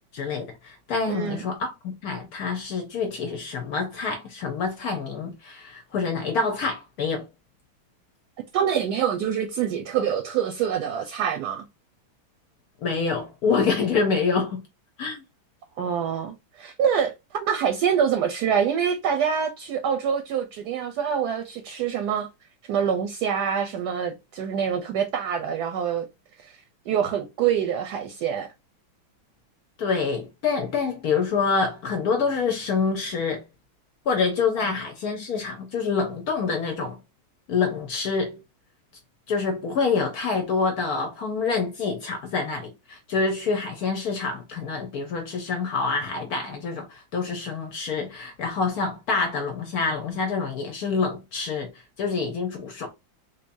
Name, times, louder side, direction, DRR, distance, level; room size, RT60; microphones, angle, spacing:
voice 1, 0.1-7.3 12.8-14.6 15.0-15.2 29.8-33.4 34.1-37.0 37.5-38.4 39.3-51.7 52.0-52.9, left 5 dB, 65° left, 1.0 m, -26 dB
voice 2, 1.1-1.4 8.5-11.6 15.8-22.3 22.7-26.1 26.4-26.5 26.9-28.5, right 8 dB, 70° right, 1.0 m, -25 dB
3.7 x 2.7 x 2.5 m
omnidirectional pair, 2.1 m